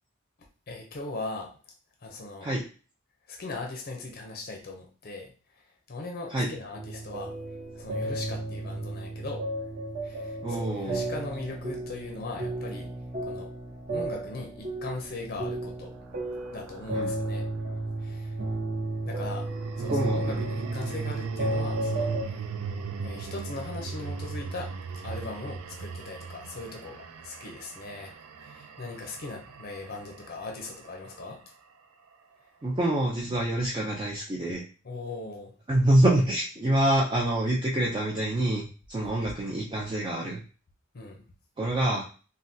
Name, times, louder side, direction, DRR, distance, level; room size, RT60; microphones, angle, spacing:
voice 1, 0.7-1.5 2.0-2.5 3.3-5.3 5.9-7.3 7.8-9.4 10.0-12.9 13.2-13.5 13.9-15.9 16.5-17.4 18.0-18.4 19.0-19.5 19.8-22.4 23.0-24.7 25.0-28.2 28.4-31.4 34.8-35.5 39.2-39.3 40.9-41.2, left 2 dB, 45° left, 2 dB, 0.5 m, -39 dB
sound 1, 6.7-22.2, right 2 dB, 40° right, 0.8 m, -33 dB
voice 2, 10.4-11.0 16.9-17.1 19.9-20.4 32.6-34.6 35.7-40.4 41.6-42.0, right 1 dB, 20° right, -3 dB, 0.4 m, -26 dB
sound 2, 15.1-17.6 19.2-31.5, right 5 dB, 85° right, 0.4 m, -40 dB
3.4 x 2.2 x 2.6 m, 0.37 s
head